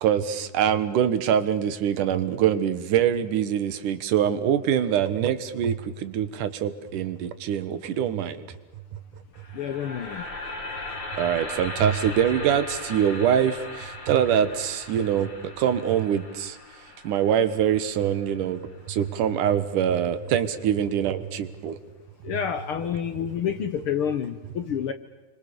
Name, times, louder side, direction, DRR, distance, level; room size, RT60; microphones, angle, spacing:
voice 1, 0.0-8.5 11.1-16.6 17.0-21.8, right 9 dB, 90° right, 12 dB, 2.9 m, -24 dB
sound 1, 9.3-19.5, left 2 dB, 40° left, 3.8 m, -38 dB
voice 2, 9.5-10.2 22.2-24.9, left 8 dB, 65° left, 10 dB, 1.4 m, -28 dB
30.0 x 25.0 x 6.9 m, 1.1 s
omnidirectional pair, 3.5 m